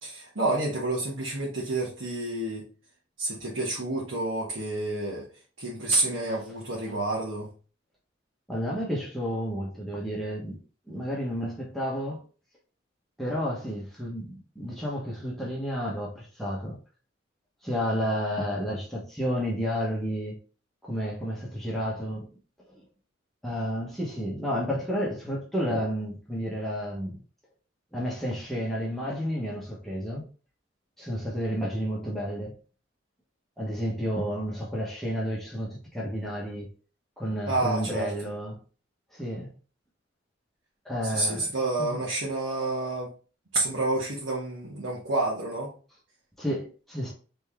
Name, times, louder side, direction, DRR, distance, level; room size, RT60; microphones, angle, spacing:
voice 1, 0.0-2.6 3.2-5.3 5.6-7.5 37.5-38.1 41.0-43.1 43.5-45.7, right 2 dB, 85° right, 1.3 m, -29 dB
voice 2, 8.5-10.6 10.9-12.2 13.2-16.8 17.6-20.4 20.8-22.3 22.7-22.8 23.4-27.2 27.9-30.3 31.0-32.5 33.6-36.7 37.2-38.6 39.1-39.5 40.8-41.4 41.8-42.0 46.4-47.1, equal, ahead, 1.1 m, -31 dB
4.0 x 3.4 x 3.4 m
head